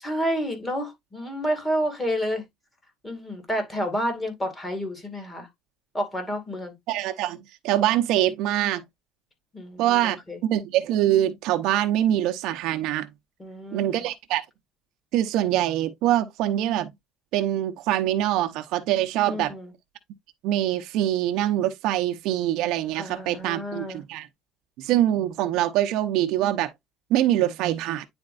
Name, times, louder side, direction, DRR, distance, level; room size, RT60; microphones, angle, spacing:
voice 1, 0.0-2.4 3.0-5.5 5.9-6.7 9.5-10.4 13.4-14.0 19.3-19.7 23.0-24.0, equal, 15° left, 2.3 m, -30 dB
voice 2, 6.9-7.4 7.6-8.8 9.8-13.1 13.7-14.4 15.1-16.9 17.3-19.5 20.4-24.3 24.8-26.7 27.1-28.1, right 12 dB, 60° right, 0.8 m, -24 dB
9.7 x 4.3 x 2.5 m
cardioid pair, 160°, 0 cm